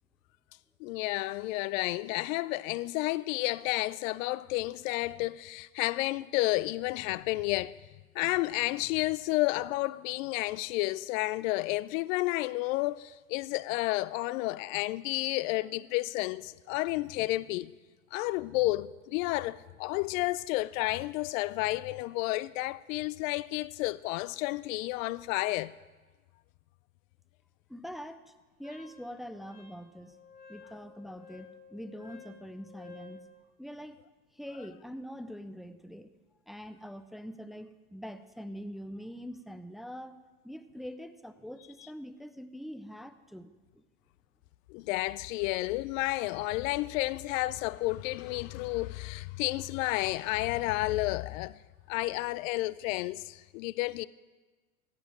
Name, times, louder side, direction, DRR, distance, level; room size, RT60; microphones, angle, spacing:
voice 1, 0.8-7.8 8.1-17.7 18.1-25.7 44.7-51.6 51.9-54.1, left 19 dB, 65° left, 0.5 m, -31 dB
voice 2, 27.7-28.3 28.6-30.2 30.5-33.2 33.6-34.0 34.3-36.1 36.5-40.2 40.4-43.8, equal, ahead, 0.4 m, -44 dB
Wind instrument woodwind instrument, 28.6-33.2, left 5 dB, 20° left, 2.9 m, -53 dB
16.0 x 5.7 x 7.5 m
hypercardioid pair, 95°, 43 cm